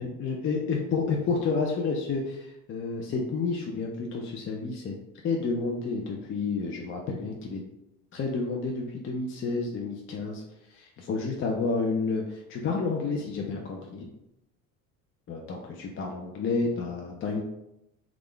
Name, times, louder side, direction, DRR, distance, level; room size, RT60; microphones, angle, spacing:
voice 1, 0.0-4.9 5.2-7.6 8.1-10.4 10.7-14.1 15.3-17.4, left 4 dB, 30° left, 0 dB, 0.6 m, -30 dB
3.4 x 2.4 x 3.3 m, 0.85 s
hypercardioid pair, 75°, 39 cm